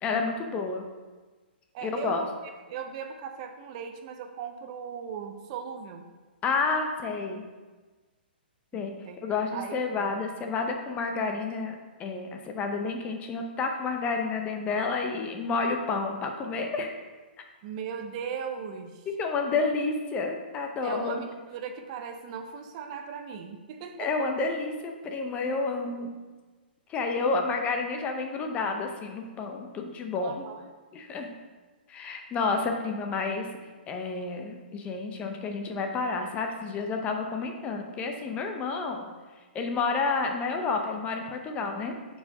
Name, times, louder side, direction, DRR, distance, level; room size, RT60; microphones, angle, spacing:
voice 1, 0.0-0.9 1.8-2.2 6.4-7.4 8.7-16.9 19.2-21.2 24.0-26.1 26.9-30.4 30.9-31.3 31.9-33.5 33.9-39.1 39.5-41.9, left 4 dB, 20° left, 3 dB, 0.6 m, -30 dB
voice 2, 1.7-2.3 2.7-6.0 9.0-9.2 9.5-9.7 17.6-19.0 20.8-24.1 27.2-27.3 30.2-30.6, right 7 dB, 40° right, 6 dB, 0.6 m, -38 dB
4.7 x 4.1 x 5.2 m, 1.3 s
hypercardioid pair, 130°, 6 cm